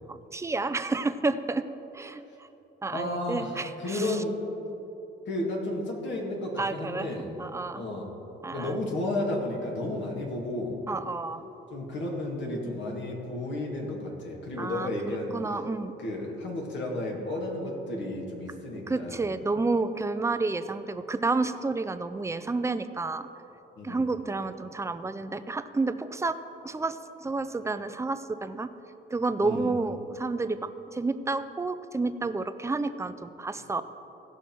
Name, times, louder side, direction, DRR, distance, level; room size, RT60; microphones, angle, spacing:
voice 1, 0.1-1.7 1.9-2.2 2.8-4.2 6.6-7.1 7.4-7.9 8.4-8.9 10.9-11.4 14.6-15.9 18.9-23.3 23.8-26.4 26.6-28.7 29.1-33.8, right 3 dB, 15° right, 11 dB, 0.5 m, -30 dB
voice 2, 2.9-4.4 5.3-7.3 7.7-8.1 8.5-10.8 11.7-15.6 16.0-19.4 23.8-24.1 29.4-29.7, left 1 dB, 65° left, -1 dB, 2.1 m, -32 dB
16.0 x 5.7 x 4.6 m, 3.0 s
cardioid pair, 90°, 20 cm